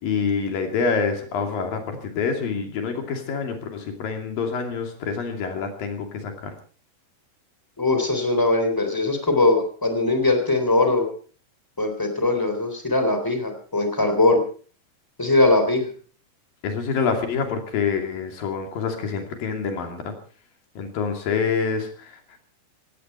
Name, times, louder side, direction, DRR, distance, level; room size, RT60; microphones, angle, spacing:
voice 1, 0.0-6.5 16.6-20.1 20.8-22.2, left 5 dB, 50° left, 5 dB, 3.9 m, -26 dB
voice 2, 7.8-11.1 11.8-14.4 15.2-15.9, left 2 dB, 5° left, 6 dB, 2.5 m, -21 dB
17.5 x 17.0 x 4.4 m, 0.41 s
omnidirectional pair, 5.7 m